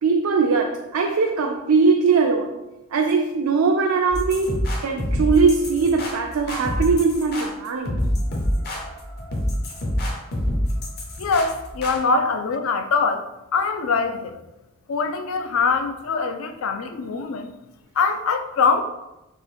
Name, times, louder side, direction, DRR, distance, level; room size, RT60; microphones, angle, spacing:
voice 1, 0.0-2.6 2.9-8.0 12.1-12.2, right 4 dB, 75° right, 2 dB, 0.4 m, -20 dB
sound 1, 4.1-12.0, equal, 45° left, 0.8 m, -26 dB
voice 2, 11.2-14.4 14.9-17.5 18.0-18.8, left 5 dB, 65° left, 7 dB, 0.4 m, -23 dB
3.6 x 2.9 x 4.3 m, 0.97 s
head